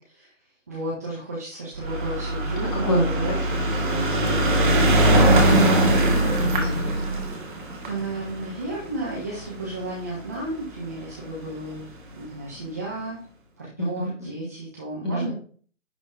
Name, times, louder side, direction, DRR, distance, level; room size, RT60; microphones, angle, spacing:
voice 1, 0.7-3.7 7.9-11.9 12.1-13.2 13.6-15.3, right 2 dB, 15° right, -5 dB, 0.7 m, -33 dB
sound 1, 1.8-10.3 11.1-11.2 11.4-11.5 11.7-11.8, right 1 dB, 40° right, 1.8 m, -21 dB
voice 2, 2.6-7.1 13.8-14.3 15.0-15.3, equal, 20° left, -2 dB, 2.2 m, -30 dB
10.5 x 3.7 x 3.8 m, 0.44 s
figure-of-eight pair, 150°, 39 cm